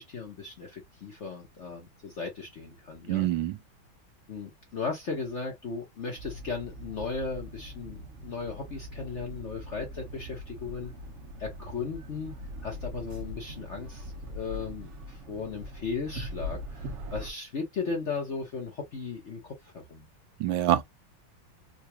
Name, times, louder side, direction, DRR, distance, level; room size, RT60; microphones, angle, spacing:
voice 1, 0.0-3.3 4.3-10.9 11.4-12.3 12.6-20.1, left 4 dB, 50° left, 0.8 m, -36 dB
voice 2, 3.1-3.6 20.4-20.8, right 13 dB, 75° right, 1.3 m, -25 dB
sound 1, 6.1-17.3, left 1 dB, 60° right, 0.7 m, -41 dB
3.9 x 2.4 x 2.7 m
omnidirectional pair, 2.2 m